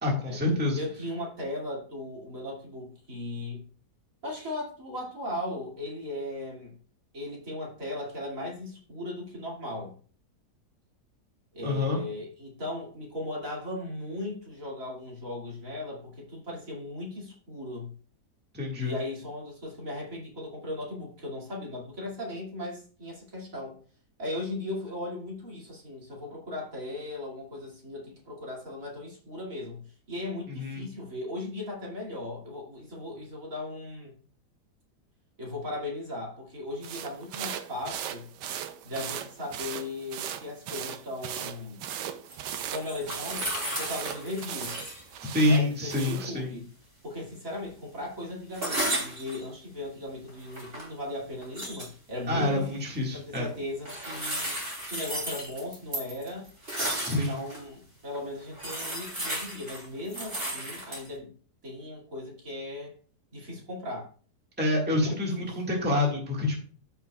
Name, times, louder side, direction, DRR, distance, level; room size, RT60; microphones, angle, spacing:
voice 1, 0.0-0.8 11.6-12.1 18.5-19.0 30.5-30.8 45.3-46.5 52.3-53.5 57.0-57.4 64.6-66.6, left 2 dB, 5° right, -2 dB, 1.6 m, -27 dB
voice 2, 0.8-3.6 4.2-6.7 7.1-9.9 11.5-17.9 18.8-23.8 24.2-29.8 30.1-34.1 35.4-38.3 38.8-41.8 42.7-43.5 43.8-44.8 45.4-46.7 47.0-52.8 53.1-54.5 54.8-56.5 57.0-61.3 61.6-62.9 63.3-64.1 64.9-65.6, left 1 dB, 50° right, -3 dB, 2.8 m, -37 dB
sound 1, 36.8-46.3, right 10 dB, 90° right, 1.3 m, -38 dB
sound 2, 42.3-45.0 45.3-45.4 48.5-49.4 50.3-50.9 51.4-51.9 53.9-57.6 58.1-58.2 58.5-61.1, right 1 dB, 35° right, 3.3 m, -34 dB
13.5 x 5.7 x 2.3 m, 0.43 s
omnidirectional pair, 1.8 m